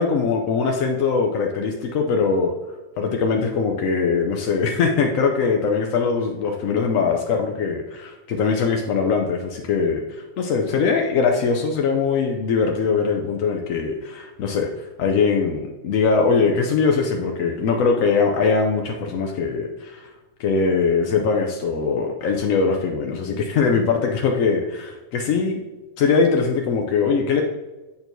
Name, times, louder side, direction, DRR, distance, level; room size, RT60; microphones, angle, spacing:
voice 1, 0.0-2.5 3.0-14.7 15.0-20.1 20.4-25.6 26.0-27.4, left 5 dB, 85° left, 2 dB, 1.1 m, -21 dB
8.4 x 4.5 x 2.6 m, 1.1 s
omnidirectional pair, 1.4 m